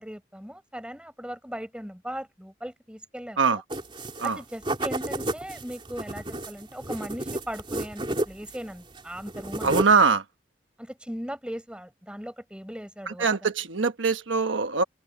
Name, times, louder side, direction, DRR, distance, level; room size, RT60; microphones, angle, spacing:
voice 1, 0.0-3.6 4.2-9.9 10.8-13.5, equal, 5° right, 5.4 m, -38 dB
sound 1, 3.7-4.3 4.6-8.6 8.9-10.1, right 1 dB, 25° right, 3.4 m, -32 dB
voice 2, 9.6-10.2 13.1-14.8, right 5 dB, 85° right, 1.3 m, -22 dB
open air
head